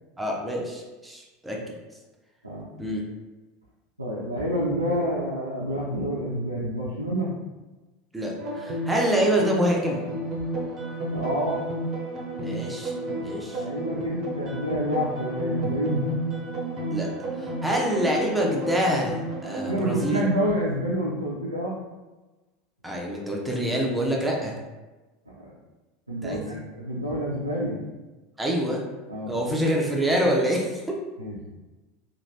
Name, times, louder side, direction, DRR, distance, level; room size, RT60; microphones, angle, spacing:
voice 1, 0.2-1.6 2.8-3.0 8.1-10.0 12.4-13.6 16.9-17.1 17.4-20.2 22.8-24.5 26.2-26.6 28.4-28.8 29.3-30.8, equal, 5° right, -2 dB, 0.7 m, -26 dB
voice 2, 4.0-7.3 11.1-11.7 13.5-16.0 19.7-21.8 25.3-25.5 26.1-27.8 29.1-29.3 31.2-31.4, equal, 90° right, -7 dB, 0.4 m, -28 dB
sound 1, 8.4-20.3, right 1 dB, 40° right, 0.7 m, -32 dB
3.0 x 2.5 x 2.6 m, 1.2 s
figure-of-eight pair, 75°, 0 cm